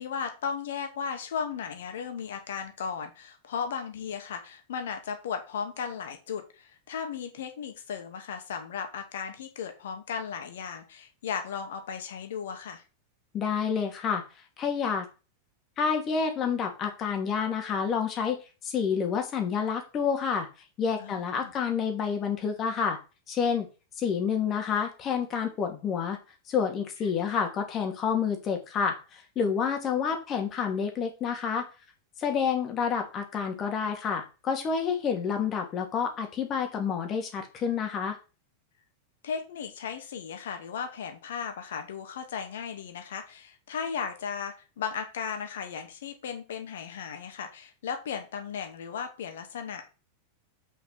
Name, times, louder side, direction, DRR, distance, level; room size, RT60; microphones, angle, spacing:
voice 1, 0.0-12.8 21.0-21.5 39.2-49.8, left 7 dB, 60° left, 5 dB, 2.0 m, -36 dB
voice 2, 13.3-14.2 14.6-15.1 15.8-20.5 20.8-23.0 23.3-23.7 24.0-26.2 26.5-31.7 32.2-38.2, left 6 dB, 30° left, 4 dB, 2.5 m, -29 dB
6.0 x 5.9 x 6.4 m, 0.32 s
figure-of-eight pair, 90°, 0 cm